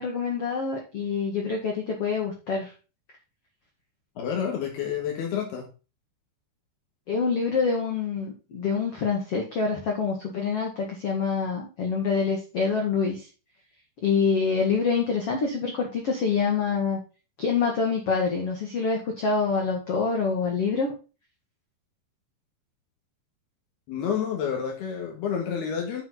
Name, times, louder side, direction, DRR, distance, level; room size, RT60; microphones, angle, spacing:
voice 1, 0.0-2.7 7.1-13.3 14.0-17.0 17.4-20.9, left 5 dB, 45° left, 2.1 m, -26 dB
voice 2, 4.2-5.7 23.9-26.0, left 7 dB, 70° left, 3.5 m, -29 dB
9.4 x 7.4 x 3.9 m
omnidirectional pair, 5.0 m